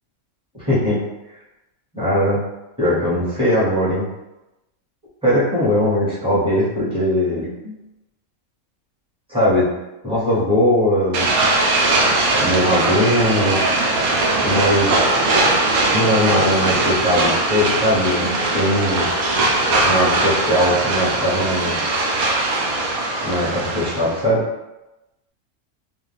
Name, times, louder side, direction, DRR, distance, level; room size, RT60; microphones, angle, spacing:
voice 1, 0.5-1.0 1.9-2.4 2.8-4.1 5.2-7.7 9.3-9.7 10.0-11.3 12.4-13.6 14.4-15.4 15.9-19.1 19.8-21.8 23.2-24.4, equal, 5° right, -10 dB, 1.0 m, -20 dB
sound 1, 11.1-24.2, right 2 dB, 85° right, 1.1 m, -20 dB
2.6 x 2.3 x 3.4 m, 0.98 s
omnidirectional pair, 1.5 m